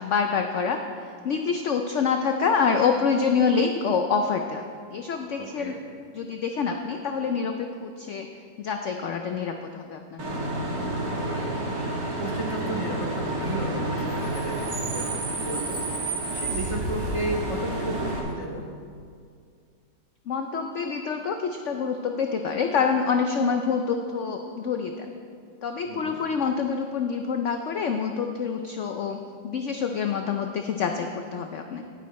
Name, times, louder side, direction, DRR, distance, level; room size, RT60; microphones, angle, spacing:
voice 1, 0.0-4.6 4.9-5.7 6.1-8.3 8.6-10.5 20.3-25.2 25.6-29.2 29.4-31.8, left 5 dB, 85° left, 5 dB, 0.6 m, -26 dB
voice 2, 5.4-5.8 11.0-18.6 25.8-26.2, right 1 dB, 40° right, -1 dB, 0.5 m, -34 dB
Bus / Idling / Screech, 10.2-18.2, right 1 dB, 55° right, 2.0 m, -29 dB
10.5 x 9.7 x 4.2 m, 2.2 s
omnidirectional pair, 1.9 m